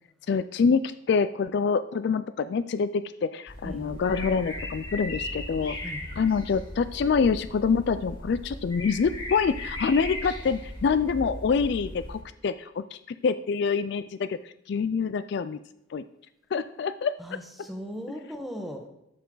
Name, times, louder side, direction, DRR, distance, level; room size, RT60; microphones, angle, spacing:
voice 1, 0.3-15.6 15.9-16.0 16.5-17.1, left 5 dB, 55° left, 13 dB, 0.3 m, -26 dB
sound 1, 3.5-12.2, left 1 dB, 25° left, 2.5 m, -37 dB
voice 2, 17.2-18.8, equal, ahead, 2 dB, 1.3 m, -37 dB
12.0 x 6.9 x 3.9 m, 0.84 s
head